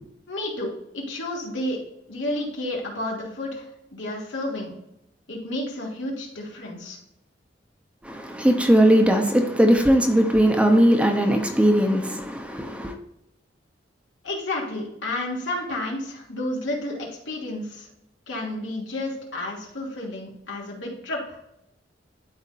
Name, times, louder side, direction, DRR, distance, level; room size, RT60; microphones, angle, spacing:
voice 1, 0.3-1.8 2.1-4.7 5.3-7.0 14.2-17.9 18.3-21.4, left 1 dB, 80° left, 2.8 m, -31 dB
voice 2, 8.0-12.9, equal, 5° right, 0.9 m, -19 dB
12.5 x 4.3 x 2.6 m
head